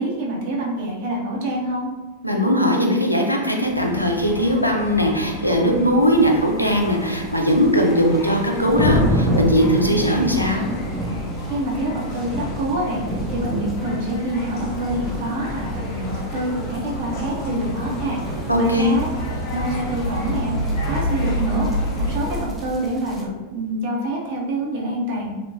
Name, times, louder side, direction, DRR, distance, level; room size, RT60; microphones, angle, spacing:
voice 1, 0.0-1.9 11.4-19.1 19.5-25.3, right 1 dB, 50° right, -2 dB, 0.7 m, -26 dB
voice 2, 2.2-10.7 18.5-19.0, equal, 90° left, 1 dB, 0.4 m, -19 dB
sound 1, 3.6-22.4, equal, 50° left, 0.8 m, -30 dB
sound 2, 6.2-23.2, equal, 10° right, 0.5 m, -29 dB
2.7 x 2.1 x 2.7 m, 1.2 s
figure-of-eight pair, 90°, 0 cm